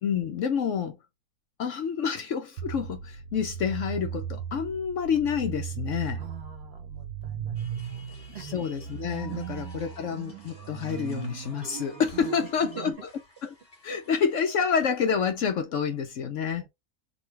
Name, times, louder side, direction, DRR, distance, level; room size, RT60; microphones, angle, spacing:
voice 1, 0.0-1.0 1.6-6.2 8.4-13.0 13.4-13.5 13.8-16.6, left 7 dB, 65° left, 0.8 m, -28 dB
sound 1, 2.6-12.9, right 9 dB, 85° right, 1.2 m, -37 dB
voice 2, 6.1-7.6 7.9-8.5 12.1-12.9 14.0-14.1 16.6-16.7, right 9 dB, 50° right, 0.9 m, -44 dB
sound 2, 7.5-15.2, left 2 dB, 25° left, 1.8 m, -52 dB
3.7 x 2.3 x 4.5 m
omnidirectional pair, 1.6 m